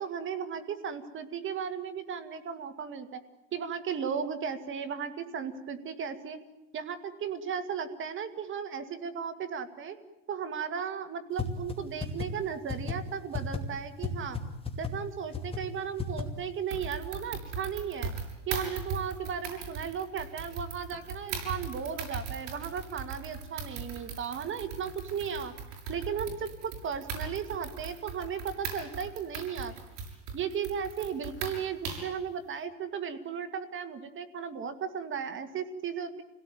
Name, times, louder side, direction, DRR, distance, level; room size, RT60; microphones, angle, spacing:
voice 1, 0.0-3.2 3.5-6.4 6.7-10.0 10.3-14.4 14.8-18.1 18.5-25.5 25.9-29.7 30.3-36.2, right 7 dB, 30° right, 9 dB, 2.0 m, -35 dB
sound 1, 11.4-11.5 11.7-11.8 12.0-12.3 12.7-12.9 13.3-13.6 14.0-14.1 14.3-14.4 14.7-14.9 15.3-15.6 16.0-16.2, left 8 dB, 15° left, 2.6 m, -31 dB
sound 2, 16.7-32.2, right 5 dB, 60° right, 6.9 m, -39 dB
27.5 x 17.5 x 9.4 m, 1.0 s
supercardioid pair, 140°, 38 cm